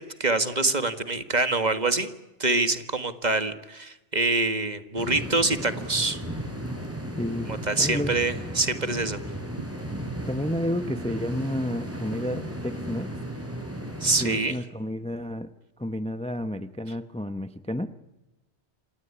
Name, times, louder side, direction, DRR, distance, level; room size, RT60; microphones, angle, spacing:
voice 1, 0.0-2.1 2.4-6.2 7.7-9.2 14.0-14.6, right 2 dB, 40° right, 10 dB, 1.8 m, -25 dB
sound 1, 5.0-14.4, right 1 dB, 10° right, 5.1 m, -35 dB
voice 2, 7.2-7.5 7.8-8.2 10.3-13.2 14.2-15.5 15.8-17.9, left 1 dB, 5° left, 11 dB, 0.8 m, -31 dB
27.0 x 19.0 x 9.8 m, 1.0 s
omnidirectional pair, 1.2 m